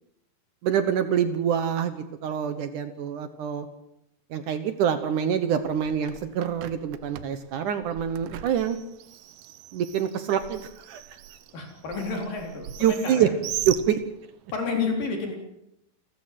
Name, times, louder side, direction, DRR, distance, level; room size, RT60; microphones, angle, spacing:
voice 1, 0.6-3.7 4.3-8.8 9.7-10.6 10.9-11.0 12.8-13.3 13.7-14.0, right 9 dB, 65° right, 10 dB, 2.4 m, -25 dB
Bird, 5.6-14.5, right 12 dB, 85° right, 2.9 m, -40 dB
voice 2, 11.5-13.3 14.5-15.4, left 4 dB, 65° left, 2 dB, 5.5 m, -30 dB
29.5 x 13.5 x 7.6 m, 0.82 s
omnidirectional pair, 4.3 m